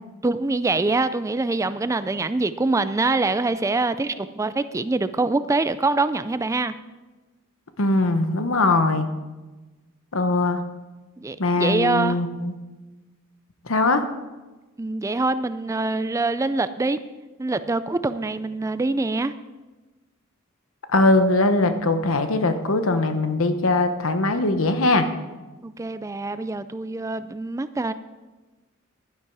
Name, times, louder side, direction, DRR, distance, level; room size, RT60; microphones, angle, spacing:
voice 1, 0.2-6.7 11.2-12.2 14.8-17.0 17.4-19.3 25.6-27.9, right 3 dB, 15° right, 12 dB, 0.3 m, -24 dB
voice 2, 7.8-9.1 10.1-10.6 11.4-12.5 13.7-14.0 20.9-25.1, left 2 dB, 70° left, 8 dB, 1.0 m, -21 dB
11.5 x 10.5 x 4.7 m, 1.2 s
head